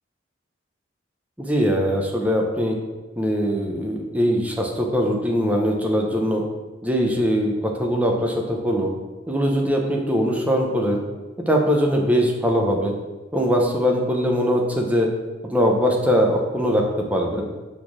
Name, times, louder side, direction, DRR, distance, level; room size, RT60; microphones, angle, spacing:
voice 1, 1.4-2.8 3.2-6.4 6.8-8.9 9.3-11.0 11.5-12.9 13.3-15.1 15.5-17.5, equal, 10° right, 0 dB, 0.9 m, -21 dB
5.4 x 4.4 x 6.2 m, 1.2 s
head